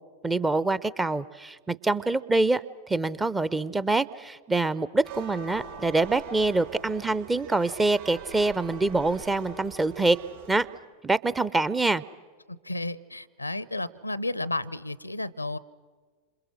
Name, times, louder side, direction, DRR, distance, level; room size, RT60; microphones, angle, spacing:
voice 1, 0.2-10.2 10.5-10.7 11.0-12.0, right 2 dB, 10° right, 18 dB, 0.6 m, -25 dB
sound 1, 5.0-10.7, right 6 dB, 65° right, 5.3 m, -43 dB
voice 2, 12.5-15.6, left 2 dB, 85° left, 21 dB, 0.7 m, -32 dB
28.0 x 27.0 x 6.3 m, 1.5 s
figure-of-eight pair, 90°, 0 cm